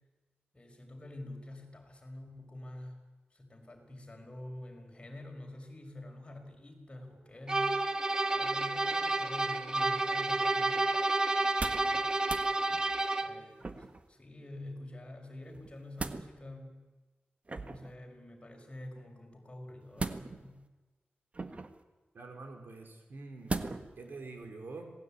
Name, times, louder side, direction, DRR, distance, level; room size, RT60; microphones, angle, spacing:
voice 1, 0.5-3.0 3.3-7.8 8.3-10.8 11.6-12.1 13.2-16.8 17.6-20.6, left 1 dB, 30° left, 3 dB, 5.1 m, -47 dB
sound 1, 7.5-13.4, right 2 dB, 20° right, 1.4 m, -30 dB
sound 2, 11.4-11.9 12.2-12.5 13.6-14.1 15.5-16.3 17.5-17.9 20.0-20.6 21.3-21.8 23.5-24.0 24.4-24.5, right 3 dB, 35° right, 1.5 m, -38 dB
voice 2, 22.1-23.6 24.0-24.9, right 3 dB, 70° right, 4 dB, 4.7 m, -46 dB
26.5 x 19.0 x 8.7 m, 1.2 s
wide cardioid pair, 125°, 4 cm